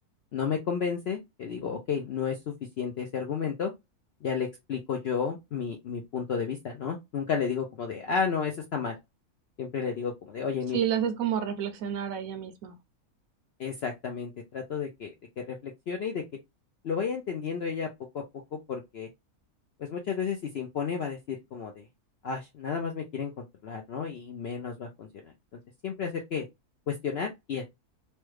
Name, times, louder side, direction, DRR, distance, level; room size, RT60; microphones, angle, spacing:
voice 1, 0.3-3.7 4.2-9.0 9.6-10.8 13.6-16.2 16.8-17.9 18.1-18.2 18.5-19.1 19.8-21.8 22.2-25.3 25.8-26.5 26.9-27.6, left 6 dB, 65° left, 0.6 m, -32 dB
voice 2, 10.7-12.7, right 9 dB, 70° right, 0.9 m, -29 dB
3.1 x 2.3 x 3.1 m
omnidirectional pair, 1.6 m